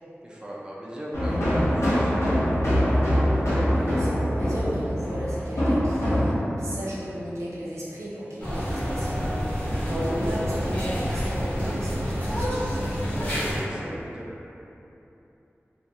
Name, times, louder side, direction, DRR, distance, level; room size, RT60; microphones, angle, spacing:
voice 1, 0.2-2.2 13.5-14.3, equal, 15° right, -5 dB, 0.4 m, -39 dB
sound 1, 1.1-6.3, equal, 85° left, 0.6 m, -23 dB
voice 2, 3.8-6.3 6.6-13.0, equal, 90° right, -8 dB, 0.5 m, -34 dB
sound 2, 8.4-13.6, equal, 30° left, 0.8 m, -28 dB
2.4 x 2.1 x 2.7 m, 2.9 s
wide cardioid pair, 65°, 5 cm